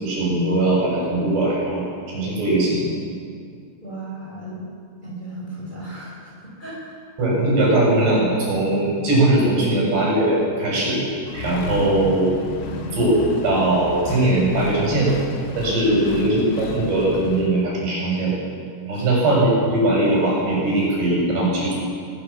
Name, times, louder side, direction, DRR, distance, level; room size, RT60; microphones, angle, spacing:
voice 1, 0.0-1.8 2.1-2.8 7.2-11.0 11.3-12.3 13.0-13.1 13.4-15.1 15.5-18.3 18.9-21.8, right 2 dB, 70° right, -4 dB, 9.6 m, -20 dB
voice 2, 3.8-4.6 5.0-6.3 6.6-7.0 9.7-9.9 12.6-13.0 15.8-16.4 18.9-19.3, equal, 10° left, -5 dB, 6.9 m, -33 dB
Accelerating revving vroom, 11.3-17.5, left 5 dB, 75° left, 3.5 m, -32 dB
21.5 x 20.0 x 7.3 m, 2.2 s
omnidirectional pair, 5.1 m